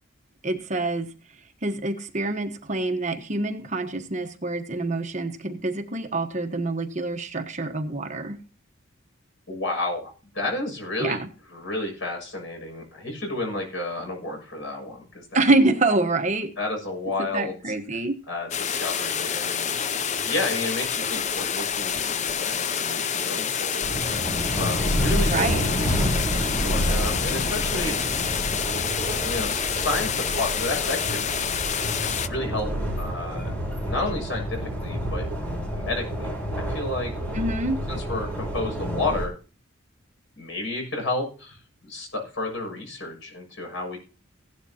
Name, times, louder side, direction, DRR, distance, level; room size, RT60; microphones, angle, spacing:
voice 1, 0.4-1.1 1.6-8.4 11.0-11.3 15.3-16.5 17.3-18.2 25.3-25.7 37.3-37.8, right 2 dB, 35° right, 6 dB, 1.2 m, -26 dB
voice 2, 9.5-11.2 11.5-15.4 16.6-17.7 18.3-19.7 20.2-28.0 29.2-31.7 32.2-32.7 33.0-33.5 33.8-35.3 35.7-37.1 37.9-39.4 40.3-44.0, left 2 dB, 70° left, 2 dB, 6.8 m, -31 dB
sound 1, 18.5-32.3, left 7 dB, 35° left, 0.6 m, -28 dB
sound 2, 23.8-39.3, equal, 5° left, 5.1 m, -29 dB
16.5 x 11.5 x 2.9 m, 0.36 s
head